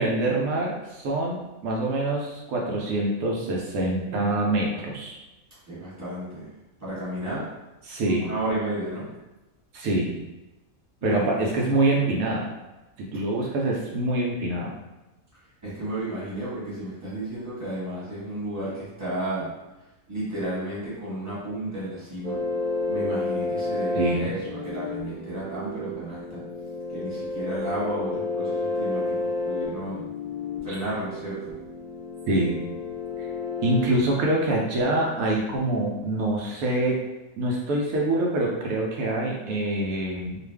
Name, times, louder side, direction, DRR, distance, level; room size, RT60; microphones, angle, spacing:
voice 1, 0.0-5.2 7.9-8.3 9.7-10.2 11.0-12.5 13.0-14.7 23.9-24.3 32.3-32.6 33.2-33.3 33.6-37.0 37.4-40.4, right 2 dB, 80° right, -2 dB, 1.0 m, -25 dB
voice 2, 5.7-6.5 6.8-7.5 8.0-9.1 11.0-11.4 15.6-19.5 20.1-22.4 22.9-26.4 26.9-30.0 30.6-31.5, right 1 dB, 15° right, -10 dB, 1.2 m, -32 dB
sound 1, 22.2-33.9, left 3 dB, 60° right, 0.4 m, -31 dB
2.4 x 2.4 x 3.3 m, 1.0 s
omnidirectional pair, 1.5 m